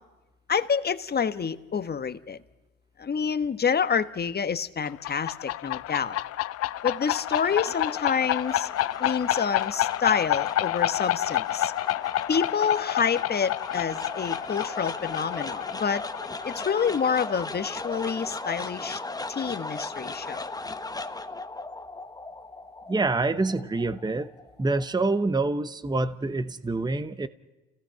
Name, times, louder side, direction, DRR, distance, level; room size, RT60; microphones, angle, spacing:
voice 1, 0.5-2.4 3.0-6.2 6.8-8.7 9.0-11.7 12.3-16.0 16.4-19.0 19.3-20.5, left 6 dB, 30° left, 11 dB, 1.3 m, -28 dB
sound 1, 4.8-18.2, left 14 dB, 50° left, 0.6 m, -29 dB
sound 2, 6.7-25.0, left 3 dB, 10° left, 1.1 m, -38 dB
voice 2, 22.9-24.3 24.6-27.3, right 3 dB, 15° right, 13 dB, 1.0 m, -26 dB
29.0 x 17.0 x 5.8 m, 1.1 s
hypercardioid pair, 70°, 31 cm